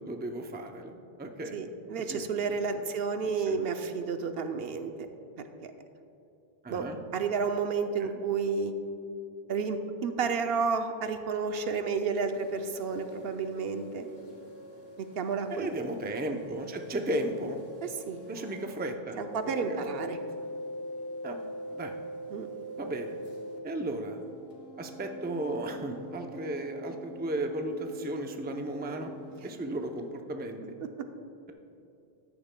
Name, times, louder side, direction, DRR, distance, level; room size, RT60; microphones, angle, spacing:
voice 1, 0.0-1.6 2.1-2.3 2.7-2.8 3.2-3.6 6.6-7.0 8.0-8.2 15.5-17.6 18.3-19.3 19.6-19.9 21.2-21.4 21.7-21.9 22.8-23.2 23.6-24.2 24.8-29.1 29.4-30.6, right 1 dB, 15° right, 4 dB, 0.4 m, -35 dB
voice 2, 1.5-5.1 5.6-5.7 6.7-6.9 7.1-8.7 9.5-14.0 15.0-15.7 17.8-18.3 19.2-20.2 22.3-22.5 30.8-30.9, right 5 dB, 75° right, 7 dB, 0.8 m, -31 dB
sound 1, 12.3-18.9 19.2-23.6 23.8-30.1, right 1 dB, 70° left, 1.7 m, -44 dB
13.5 x 10.0 x 2.2 m, 2.8 s
omnidirectional pair, 1.0 m